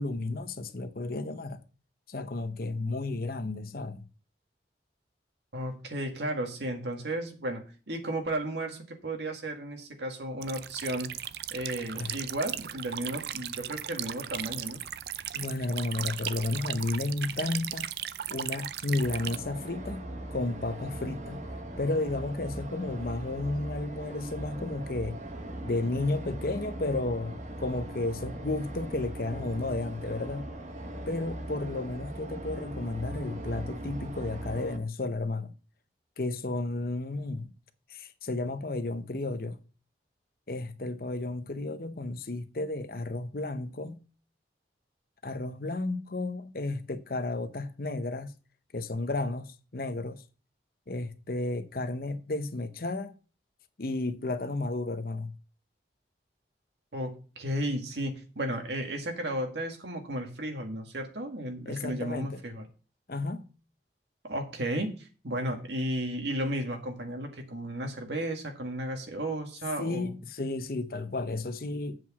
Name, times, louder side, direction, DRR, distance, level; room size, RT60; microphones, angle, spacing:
voice 1, 0.0-1.6 2.1-4.1 11.9-12.2 15.3-17.9 18.3-20.0 20.3-21.4 21.8-25.2 25.6-30.5 31.1-35.5 36.2-37.5 37.9-39.6 40.5-44.0 45.2-48.3 48.7-50.2 50.9-53.1 53.8-55.3 61.6-62.3 63.1-63.5 69.8-72.0, left 2 dB, 55° left, 0.8 m, -32 dB
voice 2, 5.5-11.1 11.5-14.8 56.9-62.7 64.2-70.1, right 1 dB, 80° right, 1.8 m, -34 dB
sound 1, 10.4-19.4, right 10 dB, 60° right, 0.4 m, -37 dB
sound 2, 19.0-34.8, right 1 dB, 45° right, 1.1 m, -40 dB
7.7 x 4.8 x 7.2 m
head